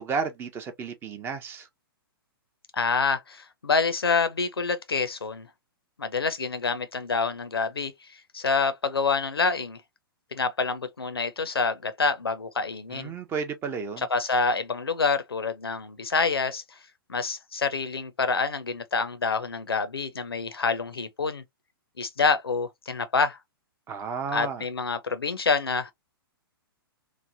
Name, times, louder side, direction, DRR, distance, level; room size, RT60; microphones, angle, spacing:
voice 1, 0.0-1.7 12.9-14.0 23.9-24.6, right 5 dB, 20° right, 0.5 m, -32 dB
voice 2, 2.7-5.5 6.0-7.9 8.3-9.8 10.3-13.1 14.0-16.6 17.1-21.4 22.0-23.4 24.3-25.9, left 4 dB, 80° left, 0.6 m, -27 dB
3.1 x 2.1 x 2.5 m
figure-of-eight pair, 110°, 13 cm